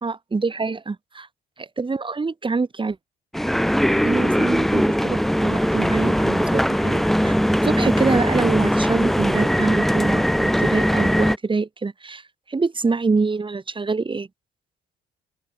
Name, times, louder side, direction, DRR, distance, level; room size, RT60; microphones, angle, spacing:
voice 1, 0.0-1.3 1.6-3.0 4.0-7.4 7.6-12.2 12.5-14.3, right 4 dB, 25° right, 2.3 m, -25 dB
sound 1, 3.3-11.4, equal, ahead, 1.1 m, -20 dB
open air
cardioid pair, 90°, 20 cm